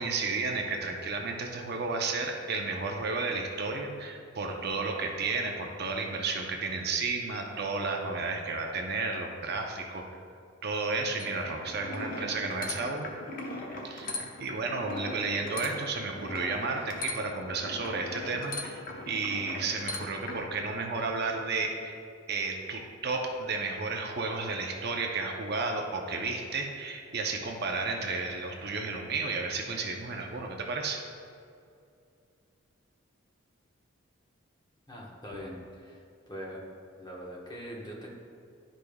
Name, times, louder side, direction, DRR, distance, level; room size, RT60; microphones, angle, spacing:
voice 1, 0.0-10.0 10.6-13.1 13.8-14.1 14.4-18.8 19.1-21.9 22.3-31.0, right 3 dB, 55° right, 2 dB, 0.6 m, -32 dB
sound 1, 11.2-20.5, left 2 dB, 45° left, 0.8 m, -40 dB
voice 2, 34.9-36.7 37.0-38.1, equal, 20° left, -4 dB, 1.2 m, -42 dB
11.0 x 5.0 x 2.3 m, 2.5 s
head